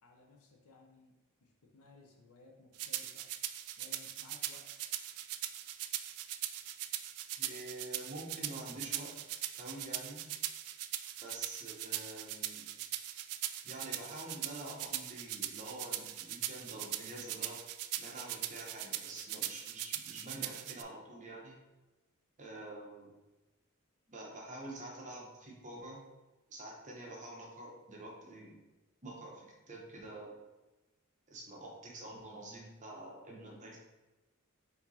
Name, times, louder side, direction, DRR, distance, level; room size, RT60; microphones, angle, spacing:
voice 1, 0.0-1.2 1.4-3.3 3.8-4.9, left 3 dB, 80° left, 1 dB, 0.7 m, -60 dB
sound 1, 2.8-20.8, right 13 dB, 85° right, 0.3 m, -40 dB
voice 2, 7.4-9.1 9.6-10.2 11.2-12.7 13.6-17.6 18.0-21.6 22.4-23.1 24.1-26.0 26.5-28.6 29.0-30.3 31.3-33.8, right 1 dB, 35° right, -2 dB, 0.9 m, -47 dB
4.4 x 2.7 x 4.1 m, 1.1 s
head